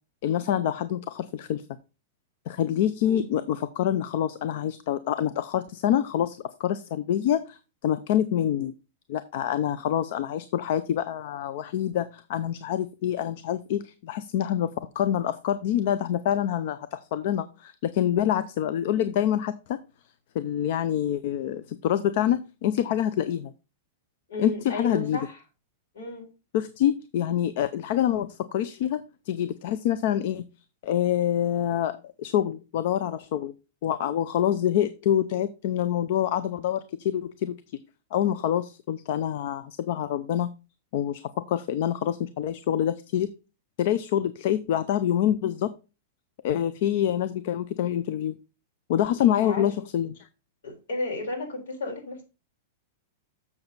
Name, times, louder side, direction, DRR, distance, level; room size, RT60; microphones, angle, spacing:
voice 1, 0.2-1.6 2.5-8.7 9.1-19.8 20.3-23.5 24.4-25.2 26.5-30.4 30.8-33.5 33.8-37.6 38.1-40.5 40.9-41.2 41.5-43.3 43.8-45.7 46.4-48.3 48.9-50.3, left 10 dB, 50° left, 0.5 m, -26 dB
voice 2, 24.3-25.4 25.9-26.3 49.2-49.7 50.6-52.2, left 2 dB, 85° left, 4.2 m, -33 dB
7.0 x 7.0 x 3.9 m
supercardioid pair, 170°, 0 cm